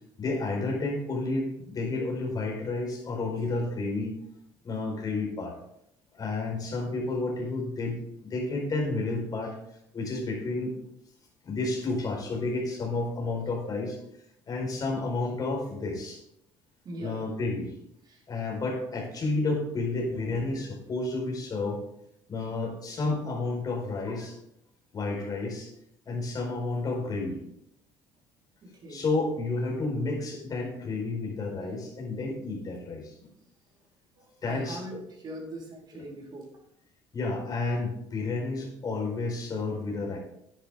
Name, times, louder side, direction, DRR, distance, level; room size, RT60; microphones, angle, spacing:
voice 1, 0.2-4.1 4.6-5.5 6.1-9.5 9.9-10.7 11.4-14.0 14.5-16.2 17.0-17.7 18.3-21.8 22.3-24.4 24.9-25.7 26.1-27.4 28.9-33.3 34.4-34.8 37.1-40.2, left 3 dB, 40° left, 0 dB, 4.7 m, -31 dB
voice 2, 16.8-17.2 18.1-18.2 28.6-29.0 34.2-36.5, right 1 dB, 45° right, -2 dB, 4.5 m, -41 dB
10.5 x 10.0 x 3.8 m, 0.76 s
supercardioid pair, 90°, 10 cm